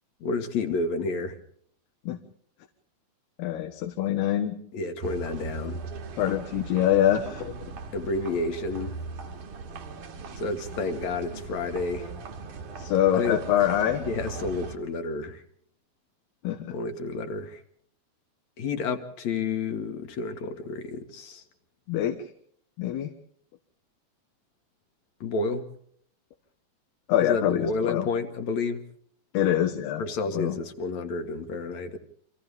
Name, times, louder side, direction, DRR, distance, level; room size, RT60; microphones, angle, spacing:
voice 1, 0.2-1.4 4.7-5.8 7.9-8.9 10.4-12.1 13.1-13.4 14.0-15.4 16.7-17.6 18.6-21.4 25.2-25.7 27.2-28.8 30.0-32.0, left 3 dB, 50° left, 6 dB, 2.9 m, -30 dB
voice 2, 3.4-4.6 6.2-7.5 12.8-14.0 16.4-16.7 21.9-22.2 22.8-23.1 27.1-28.1 29.3-30.0 30.3-30.6, left 11 dB, 85° left, 6 dB, 3.5 m, -24 dB
sound 1, 5.0-14.8, right 4 dB, 55° right, 3.5 m, -39 dB
29.5 x 26.0 x 3.6 m, 0.65 s
omnidirectional pair, 4.5 m